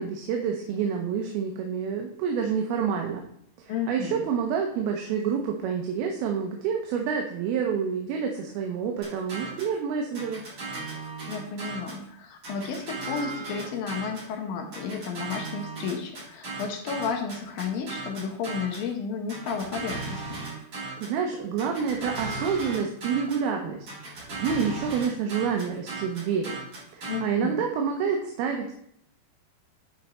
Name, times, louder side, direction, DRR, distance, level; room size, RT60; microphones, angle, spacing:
voice 1, 0.0-3.2 3.6-10.4 21.0-23.8 24.1-26.6 26.9-28.7, right 6 dB, 75° right, 2 dB, 2.6 m, -28 dB
voice 2, 3.7-4.2 11.3-20.4 27.1-27.6, left 5 dB, 70° left, 4 dB, 2.4 m, -32 dB
sound 1, 9.0-9.8 10.2-12.0 12.4-14.3 14.7-18.9 19.3-21.2 21.6-23.5 23.9-27.2, right 3 dB, 40° right, 4.5 m, -37 dB
11.0 x 4.6 x 4.2 m, 0.71 s
omnidirectional pair, 4.8 m